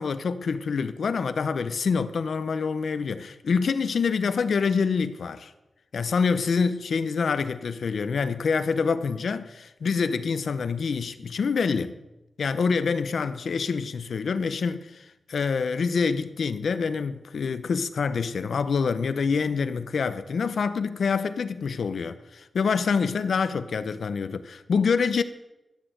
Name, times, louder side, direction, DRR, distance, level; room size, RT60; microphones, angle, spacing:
voice 1, 0.0-5.5 5.9-12.0 12.4-25.2, left 5 dB, 60° left, 0.8 m, -26 dB
14.0 x 9.3 x 7.9 m
wide cardioid pair, 175°, 0 cm